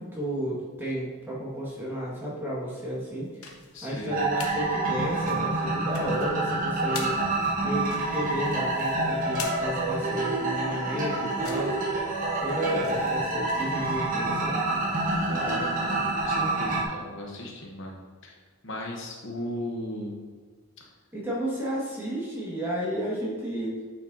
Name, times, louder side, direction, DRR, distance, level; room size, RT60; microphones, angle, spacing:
voice 1, 0.0-3.3 3.8-7.2 7.6-11.8 12.4-14.6 21.1-23.8, right 1 dB, 10° right, -6 dB, 1.8 m, -32 dB
sound 1, 3.1-4.6 5.0-14.5, left 4 dB, 80° left, 1.0 m, -44 dB
voice 2, 3.7-4.2 15.1-18.4 18.6-20.2 20.8-20.9, left 1 dB, 55° left, -1 dB, 1.1 m, -37 dB
sound 2, 4.1-16.8, right 2 dB, 35° right, 1.1 m, -28 dB
8.7 x 5.0 x 2.8 m, 1.5 s
head